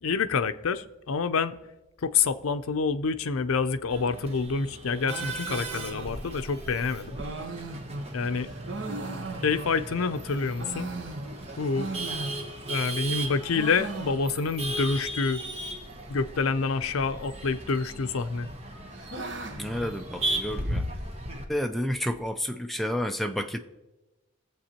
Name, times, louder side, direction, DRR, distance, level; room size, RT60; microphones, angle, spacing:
voice 1, 0.0-1.6 2.0-7.2 8.1-8.5 9.4-10.9 11.6-11.9 12.7-15.4 16.1-18.5, left 4 dB, 85° left, 10 dB, 0.5 m, -27 dB
Male speech man speaking / Laughter / Chatter, 3.9-21.4, right 1 dB, 30° right, 1.0 m, -37 dB
sound 1, 5.0-10.0 10.4-12.8 13.1-14.6 14.9-15.0 15.2-15.3 16.0-16.4 17.4-18.0 18.4-20.8, right 2 dB, 60° right, 1.0 m, -39 dB
voice 2, 19.6-20.9 21.5-23.6, equal, ahead, 5 dB, 0.4 m, -30 dB
20.0 x 7.5 x 2.9 m, 1.1 s
head